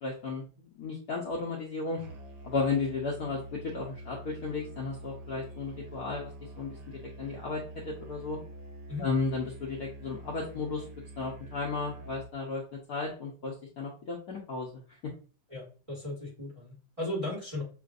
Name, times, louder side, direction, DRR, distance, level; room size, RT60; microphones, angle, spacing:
voice 1, 0.0-2.0 2.4-6.3 6.6-6.8 7.2-8.4 9.0-10.8 11.2-12.6 12.9-14.7, left 4 dB, 60° left, -3 dB, 1.1 m, -34 dB
Musical instrument, 2.0-12.3, right 1 dB, 60° right, 1.2 m, -46 dB
voice 2, 15.5-17.6, left 1 dB, 15° right, -2 dB, 1.3 m, -36 dB
6.7 x 2.5 x 2.5 m, 0.38 s
omnidirectional pair, 2.4 m